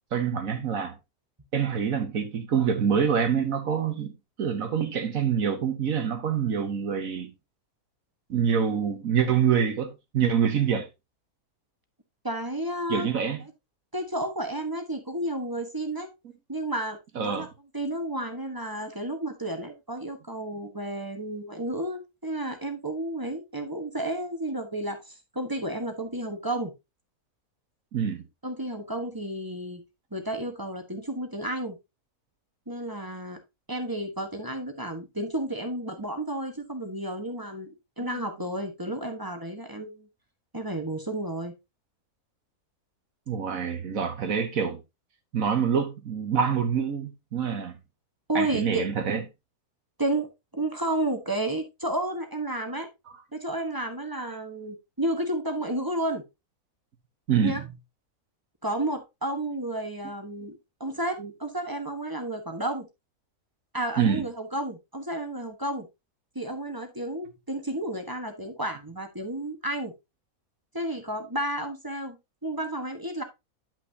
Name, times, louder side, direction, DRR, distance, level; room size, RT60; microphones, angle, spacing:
voice 1, 0.1-1.0 1.5-4.1 4.4-7.3 8.3-10.9 12.9-13.4 17.1-17.5 27.9-28.2 38.0-38.2 43.3-44.8 45.3-47.8 48.3-49.2 57.3-57.6 61.2-61.3 64.0-64.2, right 7 dB, 65° right, 1.5 m, -26 dB
voice 2, 12.2-13.1 13.9-16.1 16.5-17.5 17.7-26.7 28.4-29.8 30.1-31.8 32.7-33.4 33.7-40.1 40.5-41.5 48.3-48.8 50.0-52.9 53.3-56.2 57.4-57.6 58.6-62.9 63.7-65.9 66.3-69.9 70.7-72.2 72.4-73.2, right 1 dB, 15° right, 1.2 m, -32 dB
10.5 x 6.0 x 2.8 m
omnidirectional pair, 1.6 m